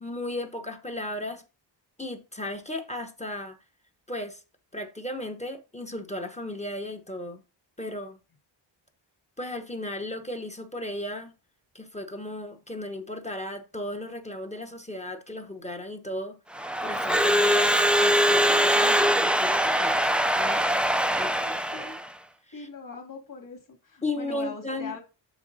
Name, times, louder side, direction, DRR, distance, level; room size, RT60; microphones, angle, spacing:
voice 1, 0.0-1.4 2.0-3.6 4.1-4.4 4.7-7.4 7.8-8.2 9.4-11.3 11.7-16.4 16.8-20.7 21.1-21.9 22.5-22.7 24.0-24.9, left 1 dB, 15° left, 1.1 m, -35 dB
Crowd / Alarm, 16.5-22.1, equal, ahead, 0.5 m, -22 dB
voice 2, 21.2-22.0 22.5-25.0, left 5 dB, 45° left, 2.7 m, -42 dB
7.1 x 6.4 x 4.1 m
wide cardioid pair, 130°, 46 cm